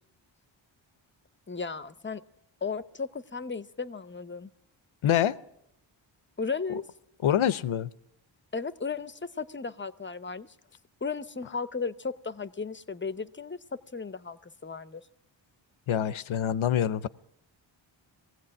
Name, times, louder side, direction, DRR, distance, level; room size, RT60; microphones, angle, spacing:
voice 1, 1.5-2.2 2.6-4.5 6.4-6.8 8.5-10.5 11.0-15.0, left 5 dB, 25° left, 15 dB, 0.7 m, -35 dB
voice 2, 5.0-5.4 6.7-6.8 7.2-7.9 15.9-17.1, left 10 dB, 85° left, 17 dB, 0.8 m, -25 dB
19.5 x 16.0 x 8.7 m, 0.78 s
wide cardioid pair, 100°, 47 cm